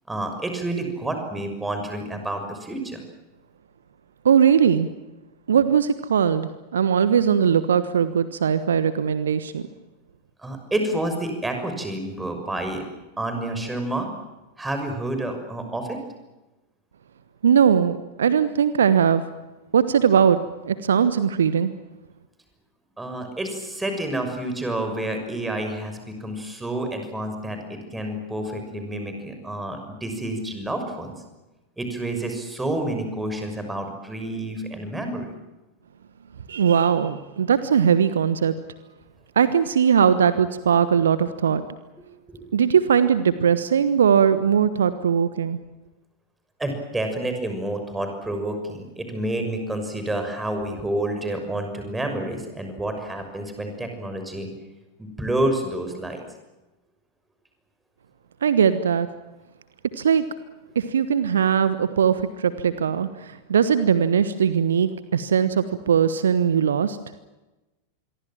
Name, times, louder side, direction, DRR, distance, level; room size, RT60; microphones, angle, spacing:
voice 1, 0.1-3.0 10.4-12.8 13.2-14.1 14.6-16.0 23.0-31.1 31.8-35.3 42.3-42.5 46.6-54.5 55.0-56.2, right 1 dB, 10° right, 5 dB, 6.3 m, -29 dB
voice 2, 4.2-4.9 5.5-9.6 17.4-19.2 19.7-20.4 20.6-21.7 36.5-38.5 39.4-41.6 42.5-45.6 58.4-59.1 60.0-60.2 60.7-63.1 63.5-67.0, right 7 dB, 65° right, 13 dB, 1.2 m, -20 dB
27.0 x 23.0 x 7.6 m, 1.1 s
figure-of-eight pair, 90°, 0 cm